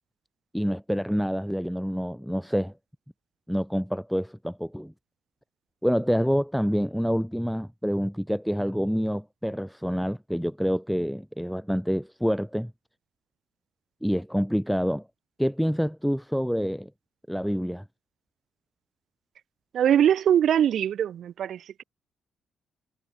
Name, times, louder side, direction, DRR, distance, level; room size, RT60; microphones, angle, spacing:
voice 1, 0.5-2.7 3.5-4.9 5.8-12.7 14.0-15.1 15.4-16.9 17.3-17.8, equal, ahead, 2.5 m, -27 dB
voice 2, 19.7-21.8, right 9 dB, 65° right, 0.4 m, -22 dB
cardioid pair, 90°, 0 cm